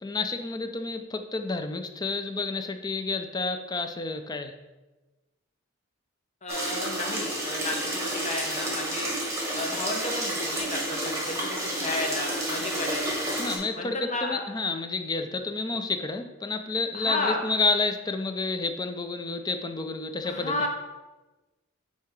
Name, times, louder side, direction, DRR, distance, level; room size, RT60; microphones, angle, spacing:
voice 1, 0.0-4.5 13.4-20.7, left 3 dB, 20° left, 7 dB, 0.4 m, -30 dB
voice 2, 6.4-9.1 9.5-13.3 13.8-14.4 16.9-17.4 20.2-20.7, left 2 dB, 35° left, 2 dB, 0.8 m, -32 dB
sound 1, 6.5-13.6, right 1 dB, 15° right, 1.5 m, -30 dB
8.2 x 2.8 x 4.6 m, 1.2 s
head